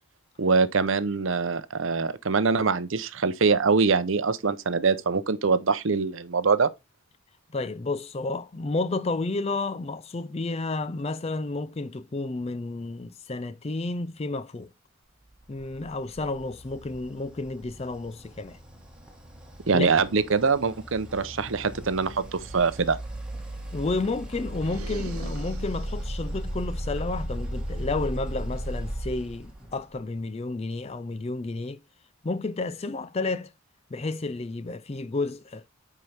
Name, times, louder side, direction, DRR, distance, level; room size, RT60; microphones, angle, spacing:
voice 1, 0.4-6.7 19.7-23.0, right 4 dB, 60° right, 0.7 m, -24 dB
voice 2, 7.5-14.7 15.5-18.6 19.7-19.9 23.7-31.8 32.2-33.5 33.9-35.6, left 3 dB, 30° left, 0.4 m, -31 dB
sound 1, 15.5-30.0, equal, 5° right, 1.6 m, -36 dB
sound 2, 24.5-26.2, right 3 dB, 90° right, 1.1 m, -43 dB
9.7 x 4.6 x 3.4 m
head